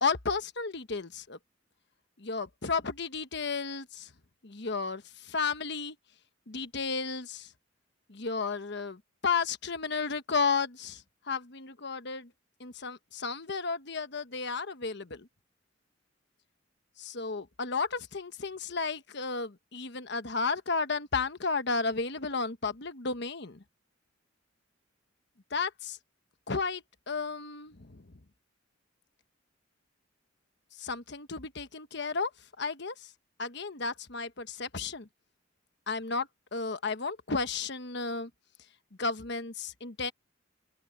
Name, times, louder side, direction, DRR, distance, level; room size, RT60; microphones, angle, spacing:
voice 1, 0.0-1.4 2.2-4.1 4.4-5.9 6.5-7.5 8.1-11.0 11.3-12.3 12.6-15.3 17.0-23.6 25.5-26.0 26.5-28.1 30.8-32.3 32.6-33.1 33.4-35.1 35.9-38.3 39.0-40.1, left 4 dB, 60° left, 1.2 m, -33 dB
open air
head